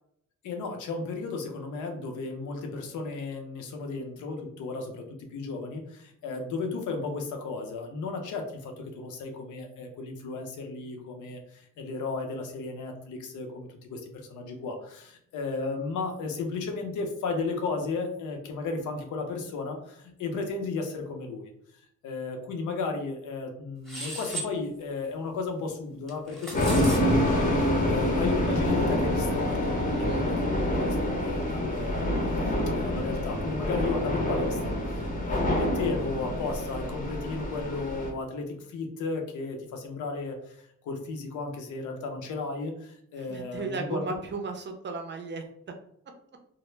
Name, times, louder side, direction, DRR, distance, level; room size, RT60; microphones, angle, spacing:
voice 1, 0.4-21.5 22.0-32.4 32.8-44.2, left 3 dB, 75° left, 3 dB, 0.6 m, -34 dB
sound 1, 23.9-24.5 26.1-27.0, right 2 dB, ahead, 0.9 m, -36 dB
sound 2, 26.5-38.1, left 1 dB, 25° left, 0.7 m, -27 dB
voice 2, 43.3-45.8, right 4 dB, 40° right, 4 dB, 0.5 m, -35 dB
2.1 x 2.0 x 3.1 m, 0.73 s
cardioid pair, 90°, 30 cm